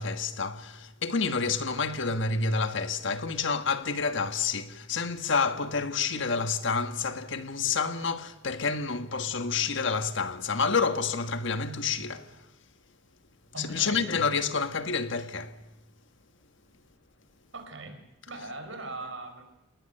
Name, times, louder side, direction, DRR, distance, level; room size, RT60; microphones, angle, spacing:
voice 1, 0.0-12.4 13.6-15.6, left 5 dB, 60° left, 1.5 m, -29 dB
voice 2, 13.5-14.1 17.5-19.4, right 3 dB, 65° right, 5.1 m, -40 dB
28.5 x 20.0 x 6.7 m
head